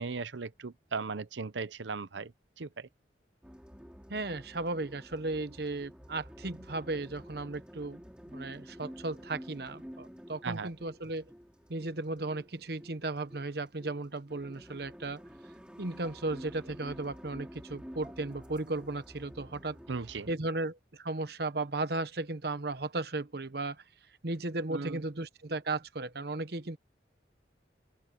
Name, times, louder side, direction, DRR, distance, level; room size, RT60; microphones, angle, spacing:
voice 1, 0.0-2.3 2.6-2.9 10.4-10.7 19.9-20.3 24.7-25.0, right 4 dB, 85° right, 0.8 m, -37 dB
sound 1, 3.4-20.3, equal, 5° right, 3.3 m, -50 dB
voice 2, 4.1-8.0 8.3-11.3 11.7-15.2 15.8-19.8 20.3-23.8 24.2-26.8, right 2 dB, 60° right, 1.1 m, -35 dB
open air
head